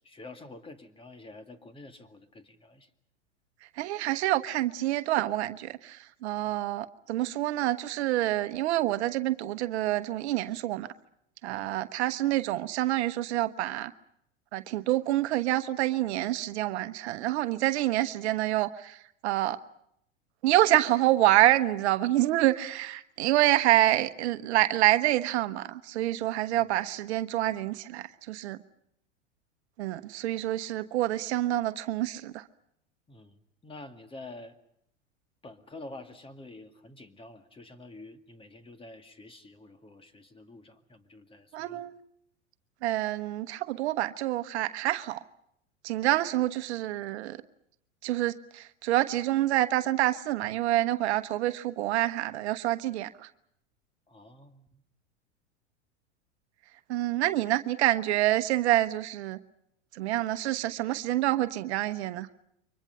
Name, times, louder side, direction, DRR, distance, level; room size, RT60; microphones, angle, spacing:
voice 1, 0.0-2.9 6.4-6.6 11.5-11.7 26.5-26.7 33.1-34.6 35.4-41.8 54.1-54.8, left 2 dB, 15° left, 2.1 m, -48 dB
voice 2, 3.8-10.9 11.4-13.9 14.5-19.0 19.2-19.6 20.4-28.6 29.8-32.4 41.5-41.9 42.8-45.2 45.8-47.4 48.0-53.3 56.9-59.4 59.9-62.3, right 15 dB, 65° right, 1.1 m, -27 dB
29.5 x 24.0 x 5.6 m
hypercardioid pair, 95°, 36 cm